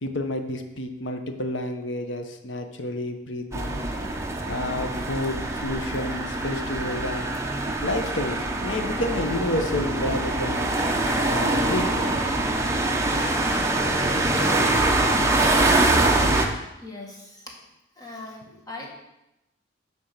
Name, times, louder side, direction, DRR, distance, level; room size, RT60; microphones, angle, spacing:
voice 1, 0.0-3.9 4.5-7.4 7.8-10.7 11.3-12.1, left 1 dB, 80° left, 6 dB, 0.9 m, -30 dB
sound 1, 3.5-16.5, right 2 dB, 15° right, 0.7 m, -24 dB
voice 2, 16.8-17.5 18.0-18.9, left 2 dB, 20° left, -2 dB, 1.6 m, -40 dB
9.9 x 3.6 x 6.6 m, 0.92 s
head